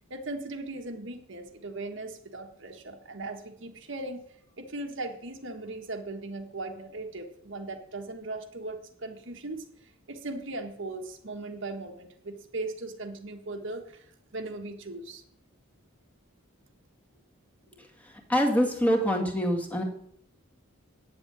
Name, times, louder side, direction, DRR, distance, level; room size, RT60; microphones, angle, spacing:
voice 1, 0.1-4.2 4.6-14.1 14.3-15.2, right 2 dB, 60° right, 4 dB, 1.5 m, -38 dB
voice 2, 18.3-19.8, equal, 5° left, 1 dB, 1.9 m, -24 dB
9.3 x 7.6 x 9.3 m, 0.68 s
head